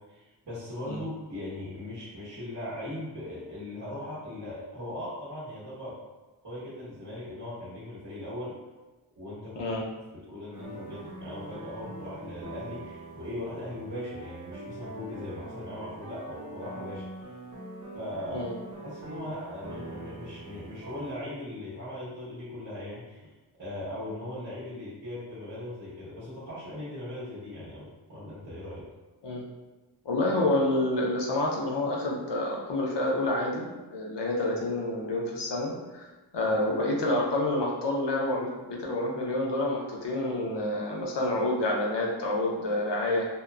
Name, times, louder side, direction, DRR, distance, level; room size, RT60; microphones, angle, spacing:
voice 1, 0.1-6.0 6.4-8.6 9.2-9.6 10.1-17.3 17.9-18.4 18.8-23.3 23.6-28.8, left 1 dB, 75° right, -12 dB, 1.2 m, -39 dB
voice 2, 9.6-9.9 18.3-18.5 29.2-29.5 30.0-36.1 36.3-43.2, left 1 dB, 80° left, -2 dB, 0.6 m, -28 dB
sound 1, 10.5-21.1, right 1 dB, 45° right, 0.9 m, -43 dB
2.8 x 2.1 x 2.3 m, 1.2 s
wide cardioid pair, 60°, 42 cm